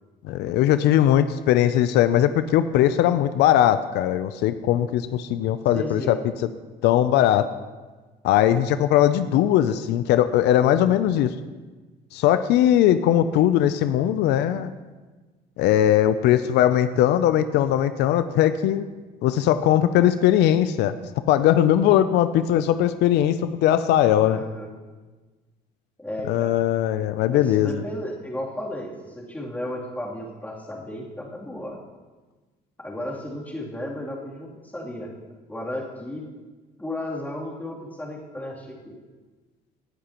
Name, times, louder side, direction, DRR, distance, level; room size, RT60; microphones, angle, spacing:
voice 1, 0.2-6.2 6.8-7.5 8.2-11.3 12.1-14.7 15.6-18.8 19.2-21.0 21.3-24.4 26.3-27.8, left 11 dB, 85° left, 12 dB, 0.5 m, -20 dB
voice 2, 5.7-6.3 24.2-24.7 26.0-26.6 27.3-31.8 32.8-35.1 35.5-36.2 36.8-39.0, left 1 dB, 10° left, -4 dB, 3.1 m, -34 dB
18.0 x 10.5 x 3.0 m, 1.3 s
cardioid pair, 110°, 17 cm